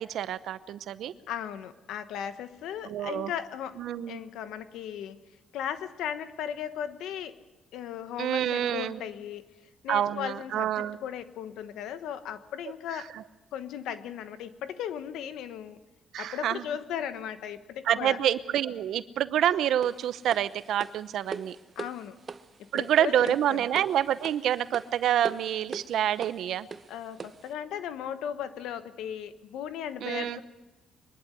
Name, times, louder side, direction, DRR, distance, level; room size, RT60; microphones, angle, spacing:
voice 1, 0.0-1.1 2.9-3.3 3.8-4.2 8.2-9.0 9.9-11.0 16.1-16.6 17.9-21.6 22.7-26.7 30.0-30.4, right 10 dB, 75° right, 14 dB, 0.8 m, -27 dB
voice 2, 1.3-3.8 4.1-5.2 5.5-7.4 7.7-9.4 9.8-13.1 13.5-15.8 16.2-18.2 21.8-22.2 22.6-23.7 26.9-30.4, left 9 dB, 85° left, 11 dB, 1.2 m, -37 dB
sound 1, 19.8-27.5, right 5 dB, 35° right, 0.9 m, -42 dB
23.5 x 11.5 x 9.6 m, 1.1 s
cardioid pair, 90°, 0 cm